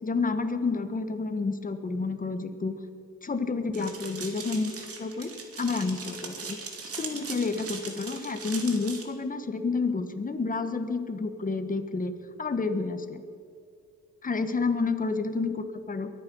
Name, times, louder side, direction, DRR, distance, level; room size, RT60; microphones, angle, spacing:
voice 1, 0.0-2.8 3.2-6.6 7.0-13.2 14.2-16.1, left 4 dB, 30° left, 8 dB, 1.5 m, -30 dB
sound 1, 3.7-9.0, right 4 dB, 50° right, 2.5 m, -40 dB
23.0 x 9.1 x 5.5 m, 2.3 s
cardioid pair, 90°, 30 cm